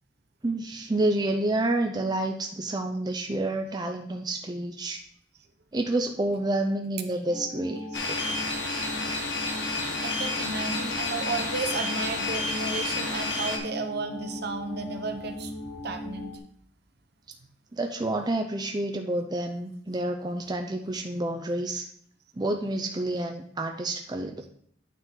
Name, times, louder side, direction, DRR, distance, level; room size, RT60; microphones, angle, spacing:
voice 1, 0.4-5.0 5.7-8.2 17.7-21.8 22.4-24.4, right 2 dB, 25° right, 4 dB, 0.5 m, -29 dB
sound 1, 7.3-16.4, left 1 dB, 35° left, 1.1 m, -38 dB
sound 2, 7.9-13.6, left 2 dB, 75° left, 1.4 m, -30 dB
voice 2, 9.5-16.4, right 4 dB, 60° right, 6 dB, 0.9 m, -34 dB
9.2 x 4.0 x 4.7 m, 0.63 s
head